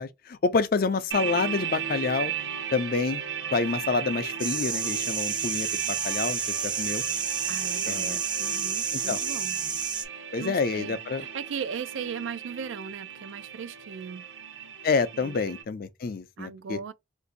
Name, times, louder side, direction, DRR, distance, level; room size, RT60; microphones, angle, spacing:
voice 1, 0.0-2.3 2.7-3.2 3.5-7.0 7.9-8.2 8.9-9.2 10.3-11.2 14.8-16.8, left 4 dB, 50° left, 0.4 m, -28 dB
sound 1, 1.1-15.6, right 8 dB, 65° right, 0.8 m, -36 dB
sound 2, 4.4-10.0, right 6 dB, 25° right, 0.5 m, -30 dB
voice 2, 7.5-9.6 10.4-14.3 15.1-15.4 16.4-16.9, right 6 dB, 85° right, 0.4 m, -38 dB
2.6 x 2.5 x 3.8 m
head